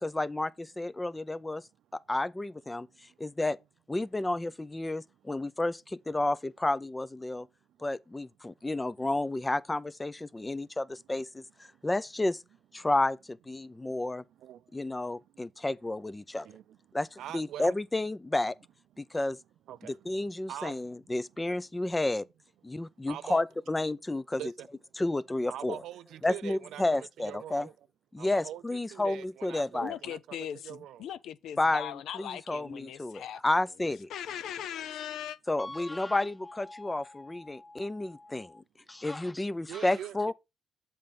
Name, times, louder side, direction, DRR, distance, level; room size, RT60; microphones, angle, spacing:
voice 1, 0.0-1.6 1.9-2.9 3.2-3.6 3.9-7.5 7.8-11.4 11.8-12.4 12.7-14.2 14.7-16.5 16.9-18.5 19.0-19.4 19.8-22.2 22.6-24.4 25.0-25.8 26.2-27.7 28.1-30.0 31.6-34.1 35.5-40.3, left 2 dB, 15° left, 0.5 m, -31 dB
voice 2, 16.4-16.8 17.2-17.8 19.7-20.0 20.4-20.7 23.1-23.4 24.3-24.7 25.5-27.7 28.2-31.1 39.7-40.2, right 11 dB, 85° right, 0.4 m, -43 dB
voice 3, 29.8-33.4 34.1-35.4, left 10 dB, 80° left, 0.6 m, -39 dB
7.6 x 4.3 x 5.2 m
cardioid pair, 85°, 0 cm